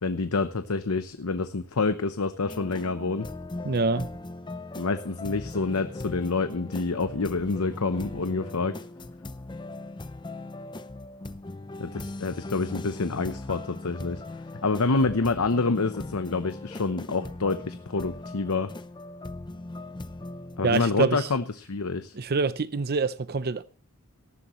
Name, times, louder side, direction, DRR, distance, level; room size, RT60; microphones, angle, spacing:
voice 1, 0.0-3.3 4.8-8.7 11.8-14.2 14.6-18.7 20.6-22.2, left 3 dB, 80° left, 0.9 m, -27 dB
sound 1, 2.4-20.9, left 2 dB, 20° left, 0.6 m, -39 dB
voice 2, 3.6-4.1 20.6-21.3 22.2-23.6, right 4 dB, 45° right, 0.6 m, -25 dB
18.5 x 14.0 x 3.1 m
head